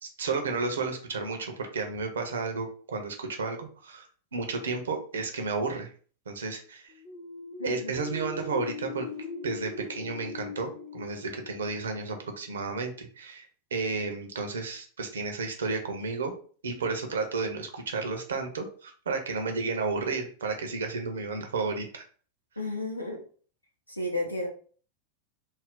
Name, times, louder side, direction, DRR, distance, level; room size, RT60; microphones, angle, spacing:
voice 1, 0.0-4.1 4.3-5.9 6.3-6.9 7.6-9.1 9.4-16.3 16.6-22.0, right 4 dB, 65° right, 4 dB, 0.6 m, -32 dB
sound 1, 6.9-12.6, left 4 dB, 40° left, 0.6 m, -41 dB
voice 2, 7.6-7.9 22.6-23.2 23.9-24.5, left 2 dB, 90° left, 0 dB, 0.6 m, -32 dB
2.6 x 2.0 x 3.6 m, 0.43 s
figure-of-eight pair, 90°, 0 cm